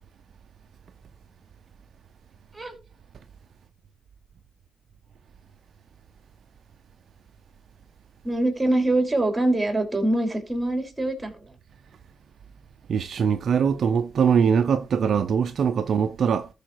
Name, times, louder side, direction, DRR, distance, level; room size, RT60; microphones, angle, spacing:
voice 1, 8.2-11.4, right 1 dB, 15° right, 3.0 m, -24 dB
voice 2, 12.9-16.5, right 7 dB, 55° right, 0.6 m, -22 dB
13.5 x 5.0 x 4.6 m
cardioid pair, 90°, 0 cm